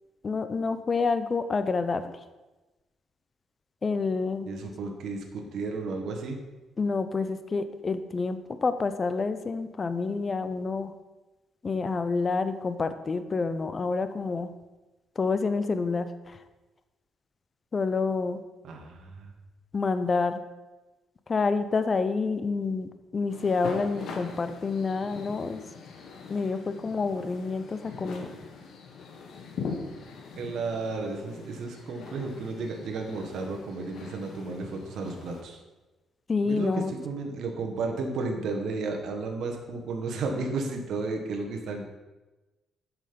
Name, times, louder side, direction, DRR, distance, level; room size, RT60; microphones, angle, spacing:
voice 1, 0.2-2.2 3.8-4.5 6.8-10.9 11.6-14.5 15.2-16.4 17.7-18.4 19.7-20.4 21.3-25.6 26.3-28.3 36.3-36.9, left 4 dB, 35° left, 11 dB, 0.7 m, -28 dB
voice 2, 4.5-6.4 18.6-19.3 30.4-35.6 36.4-41.9, right 3 dB, 70° right, 3 dB, 1.4 m, -33 dB
sound 1, 23.3-35.4, left 5 dB, 70° left, 1.4 m, -42 dB
7.6 x 6.3 x 5.2 m, 1.1 s
cardioid pair, 90°, 0 cm